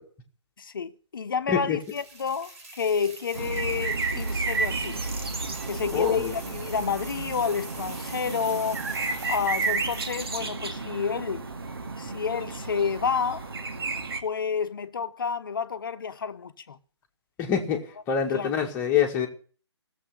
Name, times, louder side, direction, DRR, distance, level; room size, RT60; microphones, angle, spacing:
voice 1, 0.6-5.0 5.7-8.8 9.3-11.4 12.0-13.5 14.2-16.8 18.3-18.5, left 6 dB, 50° left, 1.1 m, -29 dB
sound 1, 1.8-10.5, right 2 dB, 30° right, 5.8 m, -44 dB
sound 2, 3.3-14.2, right 3 dB, 55° right, 2.2 m, -32 dB
voice 2, 5.9-6.3 17.4-19.3, left 8 dB, 15° left, 2.0 m, -26 dB
16.5 x 7.7 x 9.7 m
figure-of-eight pair, 145°, 15 cm